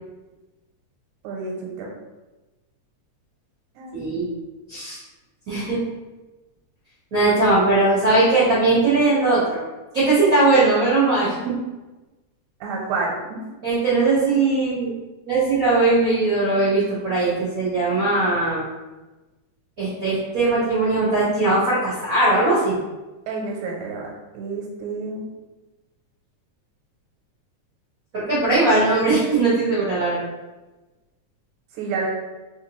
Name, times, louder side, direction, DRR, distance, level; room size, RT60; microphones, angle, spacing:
voice 1, 1.2-1.9 3.8-4.1 12.6-13.4 23.3-25.3 31.7-32.1, right 4 dB, 85° right, -1 dB, 2.0 m, -29 dB
voice 2, 3.9-4.2 4.7-5.0 5.5-5.8 7.1-9.6 9.9-11.6 13.6-14.9 15.3-18.6 19.8-22.7 28.1-30.3, right 2 dB, 65° right, -10 dB, 0.8 m, -19 dB
4.3 x 3.0 x 3.0 m, 1.1 s
omnidirectional pair, 3.3 m